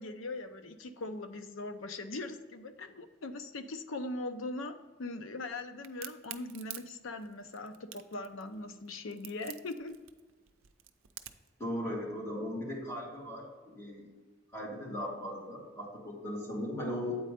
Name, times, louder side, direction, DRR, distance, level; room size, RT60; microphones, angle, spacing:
voice 1, 0.0-10.0, left 2 dB, 75° left, 8 dB, 0.6 m, -40 dB
Crack, 5.8-11.5, right 12 dB, 90° right, 0.5 m, -47 dB
voice 2, 11.6-14.1 14.5-17.2, left 1 dB, 15° left, -5 dB, 2.0 m, -38 dB
8.7 x 4.2 x 5.0 m, 1.3 s
head